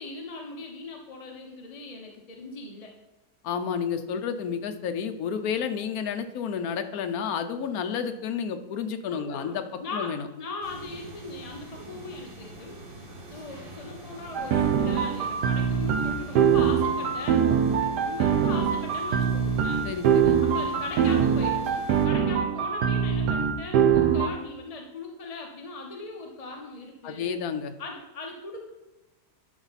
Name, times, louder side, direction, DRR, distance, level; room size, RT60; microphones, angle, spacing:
voice 1, 0.0-2.9 9.1-12.8 13.3-17.4 17.8-19.9 20.4-27.3 27.8-28.7, left 3 dB, 35° left, 1 dB, 0.6 m, -39 dB
voice 2, 3.4-9.6 9.9-10.2 19.8-20.4 27.0-27.7, left 7 dB, 65° left, 8 dB, 1.1 m, -30 dB
sound 1, 10.6-22.1, right 1 dB, 35° right, 1.4 m, -44 dB
sound 2, 14.3-24.3, right 7 dB, 75° right, 1.3 m, -23 dB
11.0 x 5.5 x 4.1 m, 1.1 s
omnidirectional pair, 1.8 m